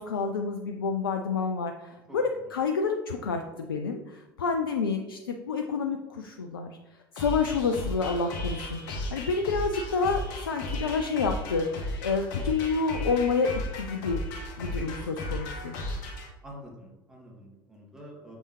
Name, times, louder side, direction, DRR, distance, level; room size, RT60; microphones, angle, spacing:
voice 1, 0.0-6.8 7.1-11.7 12.0-13.5 13.8-14.2 14.6-15.8, left 4 dB, 75° left, 4 dB, 0.4 m, -29 dB
sound 1, 7.2-16.3, left 1 dB, 60° left, 1.5 m, -35 dB
voice 2, 14.8-15.1 16.4-18.4, equal, 5° right, -3 dB, 2.2 m, -46 dB
7.0 x 5.3 x 3.1 m, 1.1 s
figure-of-eight pair, 70°, 12 cm